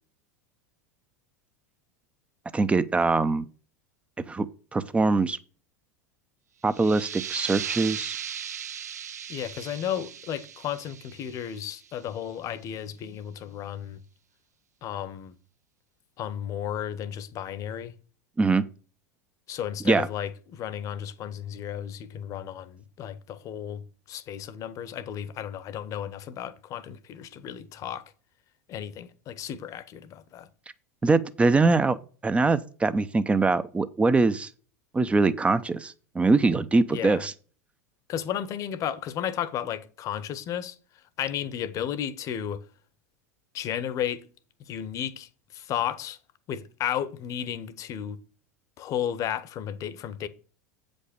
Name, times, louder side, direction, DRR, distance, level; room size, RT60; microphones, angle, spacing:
voice 1, 2.5-3.5 4.3-5.4 6.6-8.1 18.4-18.6 19.8-20.1 31.0-32.0 32.2-34.5 34.9-37.3, right 3 dB, 15° right, 0.7 m, -23 dB
sound 1, 6.7-12.1, right 8 dB, 80° right, 0.5 m, -37 dB
voice 2, 9.3-14.0 14.8-15.4 16.2-17.9 19.5-28.0 28.7-30.5 36.9-37.2 38.1-42.6 43.5-44.2 44.6-46.2 46.5-48.2 48.8-50.3, left 10 dB, 40° left, 1.0 m, -33 dB
8.3 x 5.3 x 6.6 m
hypercardioid pair, 90°, 9 cm